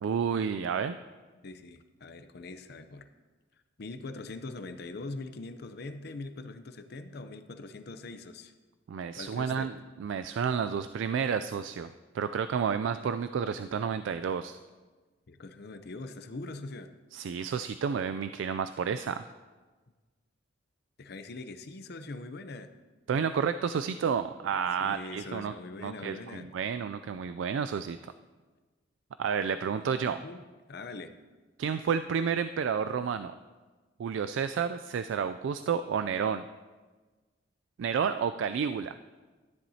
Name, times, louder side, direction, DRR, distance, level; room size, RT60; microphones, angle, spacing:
voice 1, 0.0-1.0 8.9-14.6 17.1-19.2 23.1-25.5 25.8-28.0 29.2-30.2 31.6-33.3 34.0-36.4 37.8-39.0, right 7 dB, 70° right, 11 dB, 0.3 m, -30 dB
voice 2, 1.4-3.1 3.8-8.5 9.2-9.7 15.3-16.9 21.0-22.7 24.5-26.5 29.6-30.4 30.7-31.1, left 3 dB, 55° left, 9 dB, 0.6 m, -42 dB
13.0 x 10.5 x 2.8 m, 1.3 s
head